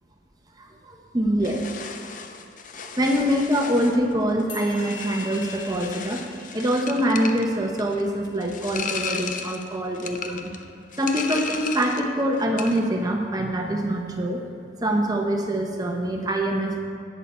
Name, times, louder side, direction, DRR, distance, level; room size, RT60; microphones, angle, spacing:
voice 1, 0.6-1.7 3.0-6.2 6.5-10.5 11.0-14.4 14.8-16.8, equal, 20° right, 2 dB, 0.9 m, -24 dB
sound 1, 1.4-12.1 12.4-12.9, left 6 dB, 45° left, 0.5 m, -35 dB
sound 2, 4.5-11.1, left 2 dB, 85° left, 2.2 m, -45 dB
11.0 x 8.3 x 4.4 m, 2.5 s
head